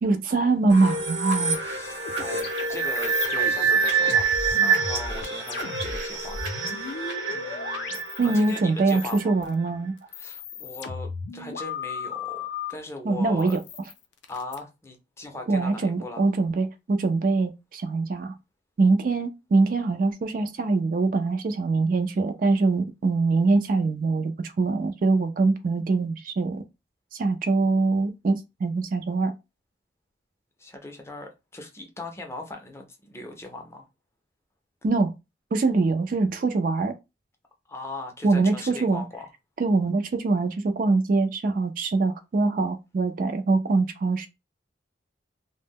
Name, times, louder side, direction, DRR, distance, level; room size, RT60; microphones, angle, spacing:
voice 1, 0.0-1.6 8.2-9.9 13.0-13.6 15.5-18.3 18.8-26.6 27.1-29.3 34.8-35.1 35.5-36.9 38.2-39.0 39.6-44.3, right 3 dB, 50° right, 0.3 m, -23 dB
sound 1, 0.7-9.3, right 4 dB, 80° right, 0.9 m, -26 dB
voice 2, 1.5-4.3 4.6-9.3 10.1-13.6 14.3-16.2 30.6-33.9 37.7-39.3, left 2 dB, 15° left, 0.4 m, -39 dB
sound 2, 2.1-8.6 8.9-9.5 10.0-12.7 13.4-14.6, left 5 dB, 75° left, 0.4 m, -36 dB
2.1 x 2.0 x 3.4 m
head